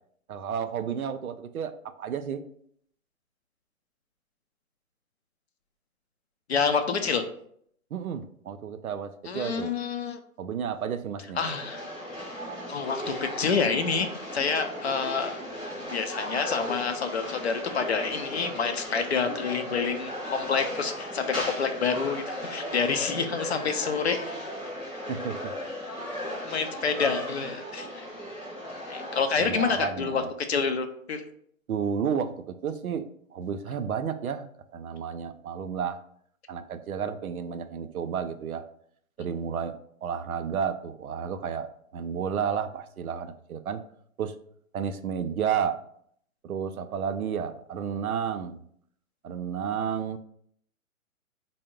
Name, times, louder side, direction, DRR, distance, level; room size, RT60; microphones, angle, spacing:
voice 1, 0.3-2.4 7.9-9.7 10.4-11.4 25.1-25.5 29.4-30.3 31.7-34.5 34.7-36.0 36.5-38.6 39.2-39.8 40.0-41.7 41.9-43.8 44.2-44.3 44.7-45.8 46.4-48.6 49.2-50.2, right 7 dB, 80° right, 10 dB, 0.5 m, -31 dB
voice 2, 6.5-7.2 9.3-10.2 11.4-11.8 12.7-14.1 14.3-15.4 15.9-24.3 26.4-28.1 28.9-30.2 30.5-31.3, left 5 dB, 50° left, 7 dB, 0.5 m, -28 dB
sound 1, 11.4-29.2, equal, ahead, 0.6 m, -36 dB
4.3 x 2.0 x 3.6 m, 0.66 s
figure-of-eight pair, 130°, 43 cm